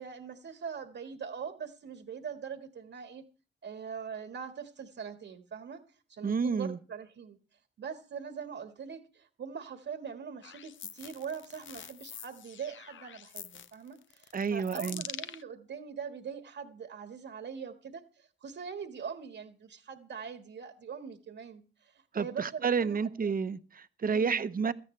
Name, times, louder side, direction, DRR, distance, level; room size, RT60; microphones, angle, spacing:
voice 1, 0.0-3.2 3.6-5.8 6.1-7.4 7.8-23.4 24.1-24.5, right 6 dB, 70° right, 1.6 m, -42 dB
voice 2, 6.2-6.8 14.3-15.0 22.1-24.7, right 5 dB, 45° right, 0.9 m, -30 dB
sound 1, 10.4-15.4, left 9 dB, 70° left, 0.7 m, -45 dB
17.5 x 13.5 x 3.2 m
cardioid pair, 75°, 20 cm